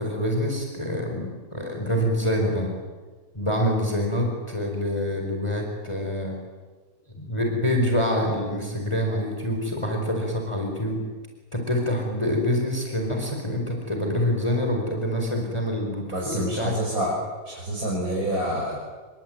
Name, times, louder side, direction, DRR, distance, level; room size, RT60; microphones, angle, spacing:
voice 1, 0.0-2.7 3.3-6.4 7.2-11.0 11.5-16.7, equal, 20° left, 1 dB, 4.7 m, -26 dB
voice 2, 16.1-17.1 17.4-18.8, equal, 70° right, -3 dB, 6.4 m, -27 dB
28.5 x 23.0 x 9.1 m, 1.3 s
omnidirectional pair, 1.6 m